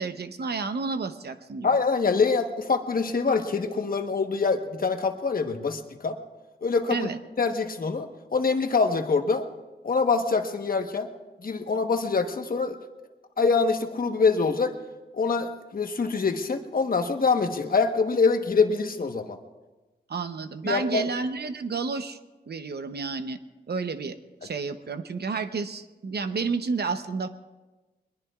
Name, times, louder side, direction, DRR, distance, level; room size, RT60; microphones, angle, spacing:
voice 1, 0.0-1.8 6.9-7.2 20.1-22.2 22.5-23.4 23.7-27.3, right 4 dB, 70° right, 9 dB, 0.9 m, -31 dB
voice 2, 1.6-6.2 6.6-7.1 7.4-9.5 9.8-11.1 11.4-12.8 13.4-14.8 15.1-19.4 20.6-21.1, left 4 dB, 55° left, 5 dB, 1.2 m, -25 dB
22.5 x 21.0 x 2.4 m, 1.2 s
wide cardioid pair, 105°, 18 cm